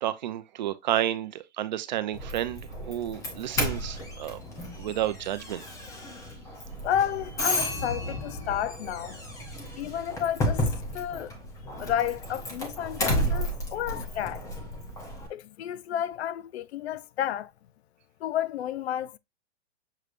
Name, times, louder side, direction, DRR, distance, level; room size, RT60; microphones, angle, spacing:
voice 1, 0.0-4.4 4.8-5.6, right 12 dB, 40° right, 0.5 m, -31 dB
Doorbell, 2.1-15.3, left 1 dB, 10° left, 0.7 m, -33 dB
voice 2, 6.8-9.2 9.8-11.3 11.8-14.4 15.3-17.5 18.2-19.2, left 10 dB, 65° left, 0.5 m, -31 dB
6.6 x 3.2 x 2.5 m
hypercardioid pair, 160°, 35 cm